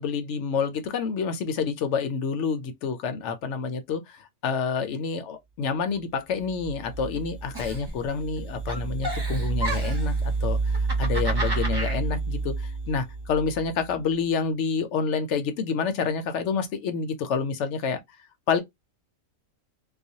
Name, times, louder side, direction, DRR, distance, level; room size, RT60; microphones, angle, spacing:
voice 1, 0.0-18.0 18.5-18.6, left 5 dB, 65° left, 0.8 m, -28 dB
sound 1, 6.4-13.9, right 4 dB, 40° left, 0.4 m, -29 dB
Giggle, 7.5-8.4 8.7-10.1 10.7-12.0, equal, 25° right, 0.6 m, -32 dB
2.4 x 2.2 x 2.7 m
omnidirectional pair, 1.4 m